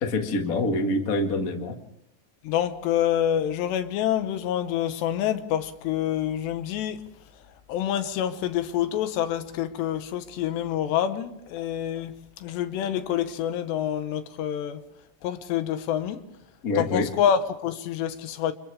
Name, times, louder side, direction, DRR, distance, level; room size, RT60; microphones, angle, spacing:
voice 1, 0.0-1.8 16.6-17.1, left 2 dB, 50° left, 1.0 m, -26 dB
voice 2, 2.4-7.1 7.7-14.8 15.2-16.3 16.8-18.5, left 10 dB, 80° left, 3.3 m, -27 dB
29.5 x 29.5 x 3.5 m
omnidirectional pair, 4.9 m